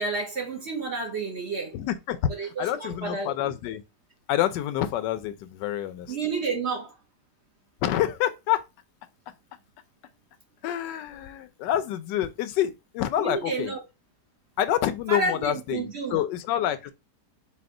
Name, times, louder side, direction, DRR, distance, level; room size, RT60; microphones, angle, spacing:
voice 1, 0.0-1.7 2.4-3.3 6.1-6.9 13.2-13.8 15.1-16.2, right 4 dB, 50° right, 1.0 m, -30 dB
voice 2, 1.7-2.2 2.6-3.8 4.3-6.2 7.8-8.6 10.6-13.7 14.6-16.9, left 12 dB, 80° left, 1.2 m, -27 dB
4.3 x 2.4 x 3.6 m
omnidirectional pair, 1.9 m